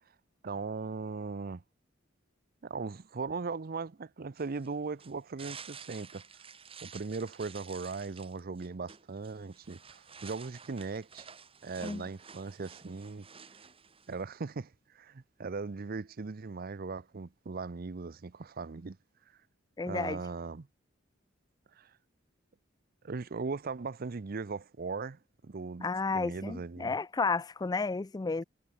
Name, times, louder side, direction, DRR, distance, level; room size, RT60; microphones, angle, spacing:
voice 1, 0.4-1.6 2.6-6.2 6.8-11.3 11.6-13.3 14.1-19.0 19.8-20.7 21.8-21.9 23.0-26.9, right 4 dB, 50° right, 0.6 m, -38 dB
sound 1, 4.4-14.2, right 6 dB, 30° right, 1.8 m, -51 dB
voice 2, 19.8-20.2 25.8-28.4, left 4 dB, 20° left, 0.4 m, -32 dB
head